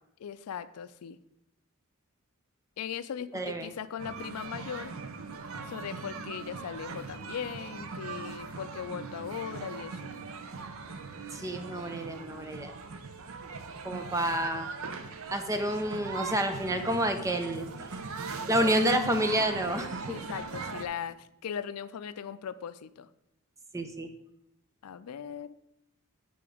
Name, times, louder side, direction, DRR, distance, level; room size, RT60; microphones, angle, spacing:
voice 1, 0.2-1.2 2.8-4.9 5.7-10.1 20.1-23.1 24.8-25.5, left 8 dB, 85° left, 13 dB, 0.4 m, -39 dB
voice 2, 3.3-3.7 11.3-12.7 13.8-14.7 15.3-17.7 18.5-20.2 23.7-24.1, right 1 dB, 15° right, 6 dB, 0.6 m, -29 dB
sound 1, 4.0-20.9, right 4 dB, 65° right, 0.6 m, -40 dB
8.8 x 3.9 x 4.8 m, 0.82 s
head